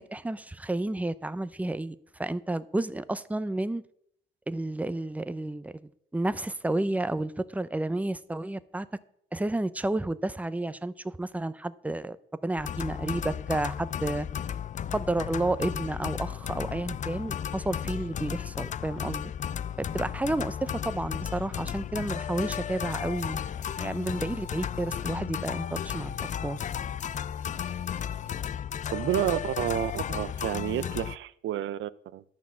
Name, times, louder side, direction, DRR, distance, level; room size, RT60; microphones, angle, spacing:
voice 1, 0.0-3.8 4.5-8.9 9.3-12.2 12.4-14.3 14.9-19.3 19.8-23.4 23.8-26.6, right 2 dB, 5° right, 0.6 m, -31 dB
sound 1, 12.6-31.2, left 9 dB, 40° left, 0.4 m, -34 dB
voice 2, 28.9-32.2, right 12 dB, 75° right, 0.6 m, -30 dB
12.0 x 6.0 x 7.3 m
cardioid pair, 90°, 20 cm